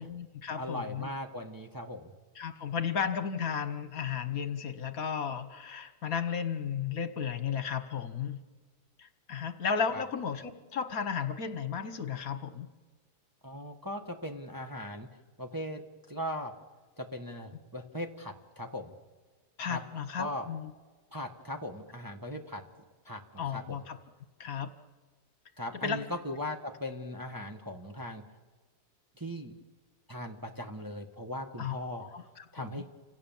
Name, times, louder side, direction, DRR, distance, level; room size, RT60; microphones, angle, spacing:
voice 1, 0.0-1.1 2.3-8.4 9.0-12.7 19.6-20.7 23.4-24.0 24.4-24.7 25.8-26.0 31.6-32.8, left 7 dB, 60° left, 10 dB, 1.6 m, -34 dB
voice 2, 0.6-2.1 9.9-10.0 13.4-15.1 15.4-15.8 16.1-16.5 17.0-18.9 19.7-19.8 20.2-20.5 21.1-22.6 23.0-23.8 25.6-28.2 29.2-29.5 30.1-32.0 32.5-32.9, left 1 dB, 15° right, 2 dB, 1.4 m, -39 dB
29.5 x 26.5 x 7.3 m, 1.4 s
omnidirectional pair, 1.7 m